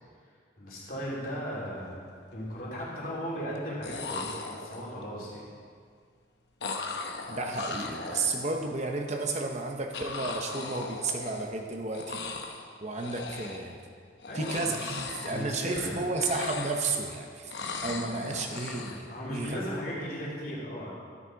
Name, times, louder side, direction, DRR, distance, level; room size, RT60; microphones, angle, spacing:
voice 1, 0.6-5.4 14.3-16.1 19.1-21.0, equal, 50° left, -5 dB, 3.2 m, -37 dB
sound 1, 1.4-1.6 1.9-2.5 3.6-3.7 3.8-5.0 6.6-8.8 9.9-11.7 11.9-12.7 13.0-13.8 14.2-15.9 16.1-17.1 17.5-19.0, left 3 dB, 65° left, 0.9 m, -38 dB
voice 2, 7.3-12.2 12.8-13.8 14.3-17.5 17.8-19.6, right 3 dB, 35° right, 2 dB, 0.9 m, -32 dB
12.5 x 9.7 x 4.7 m, 2.1 s
head